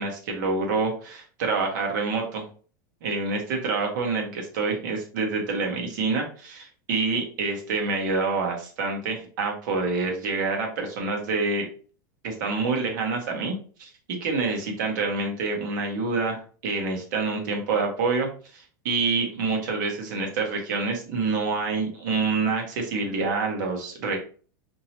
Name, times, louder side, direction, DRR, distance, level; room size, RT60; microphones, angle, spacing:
voice 1, 0.0-2.5 3.0-11.7 12.2-24.2, right 4 dB, 65° right, 1 dB, 1.2 m, -27 dB
2.9 x 2.9 x 2.9 m, 0.41 s
supercardioid pair, 150°, 11 cm